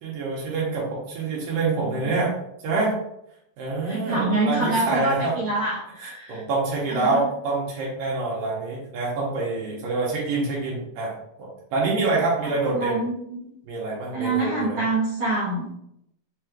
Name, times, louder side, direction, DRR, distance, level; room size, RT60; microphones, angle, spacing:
voice 1, 0.0-2.3 2.6-2.9 3.6-5.3 6.0-11.1 11.4-13.0 13.6-14.8, right 3 dB, 75° right, -5 dB, 2.6 m, -26 dB
voice 2, 3.9-6.4 6.9-7.2 12.4-13.4 14.1-15.7, right 2 dB, 55° right, -6 dB, 1.6 m, -26 dB
6.9 x 3.1 x 2.4 m, 0.77 s
omnidirectional pair, 4.0 m